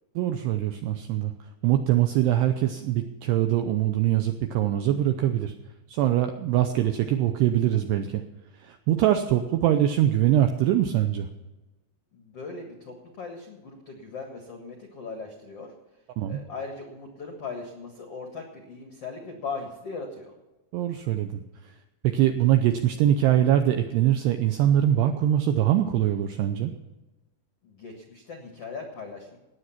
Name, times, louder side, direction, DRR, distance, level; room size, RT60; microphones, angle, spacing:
voice 1, 0.2-1.3 1.6-5.5 5.9-8.2 8.6-11.3 16.2-16.4 20.7-21.4 22.0-26.7, right 11 dB, 85° right, 7 dB, 2.4 m, -23 dB
voice 2, 12.1-15.7 16.2-20.3 27.6-29.4, left 4 dB, 80° left, 3 dB, 1.3 m, -39 dB
18.5 x 8.1 x 5.8 m, 1.1 s
omnidirectional pair, 5.7 m